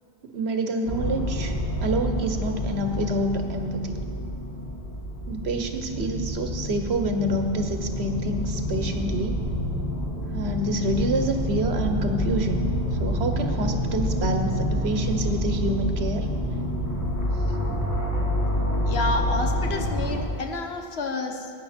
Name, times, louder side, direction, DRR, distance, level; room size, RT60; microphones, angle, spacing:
voice 1, 0.2-1.5 1.8-4.0 5.3-9.4 10.3-12.7 13.0-16.3, right 1 dB, 85° right, 5 dB, 1.3 m, -27 dB
sound 1, 0.8-20.2, equal, 15° left, 2.4 m, -28 dB
voice 2, 18.9-21.5, left 2 dB, 85° left, 5 dB, 1.3 m, -29 dB
16.5 x 9.5 x 4.4 m, 2.4 s
omnidirectional pair, 1.0 m